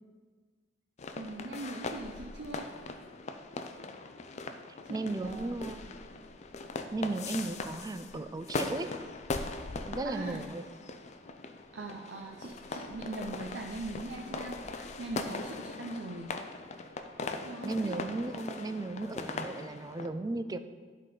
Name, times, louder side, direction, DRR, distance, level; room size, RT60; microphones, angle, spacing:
sound 1, 1.0-20.1, left 3 dB, 40° left, 0.4 m, -40 dB
voice 1, 1.2-2.7 4.8-5.5 10.0-10.4 11.7-16.3 17.4-17.9, right 2 dB, 80° right, 1 dB, 0.6 m, -41 dB
voice 2, 4.9-5.8 6.9-8.9 9.9-10.7 17.6-20.6, right 2 dB, 20° right, 10 dB, 0.3 m, -35 dB
11.0 x 3.8 x 4.9 m, 1.5 s
head